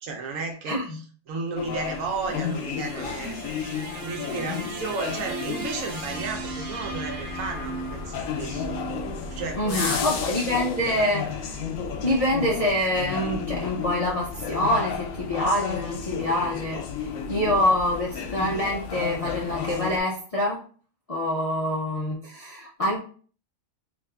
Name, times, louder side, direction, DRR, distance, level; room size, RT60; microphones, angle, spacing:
voice 1, 0.0-0.8 1.3-3.4 3.7-8.8 9.3-10.3 11.0-11.1, right 4 dB, 75° right, 2 dB, 1.1 m, -33 dB
voice 2, 0.7-1.0 9.6-11.6 12.0-16.9 17.3-20.6 21.1-23.0, left 1 dB, 50° left, -4 dB, 0.4 m, -26 dB
sound 1, 1.6-20.0, left 6 dB, 80° left, 1.0 m, -33 dB
sound 2, 1.8-10.1, right 2 dB, 50° right, 1.0 m, -37 dB
3.4 x 2.4 x 3.3 m, 0.43 s
omnidirectional pair, 1.4 m